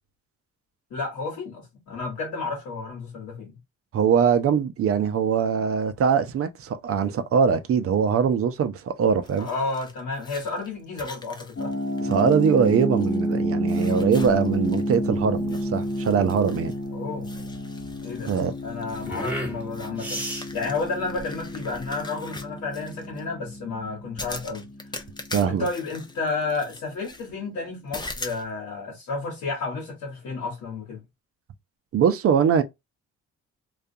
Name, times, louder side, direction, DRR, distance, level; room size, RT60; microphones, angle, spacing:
voice 1, 0.9-3.5 9.4-11.7 16.9-17.4 18.0-18.3 18.6-24.7 25.5-31.0, left 3 dB, 75° left, 1.2 m, -31 dB
voice 2, 3.9-9.5 12.0-16.7 18.3-18.5 25.3-25.7 31.9-32.6, right 7 dB, 50° right, 0.5 m, -22 dB
sound 1, 9.2-13.4 13.7-15.0 15.4-16.9 17.2-23.2 24.2-27.3 27.9-28.5, left 2 dB, 15° left, 0.5 m, -42 dB
sound 2, 11.6-26.3, equal, 40° left, 0.9 m, -30 dB
sound 3, 14.0-22.0, equal, 5° right, 1.1 m, -37 dB
2.4 x 2.3 x 2.6 m
cardioid pair, 90°, 30 cm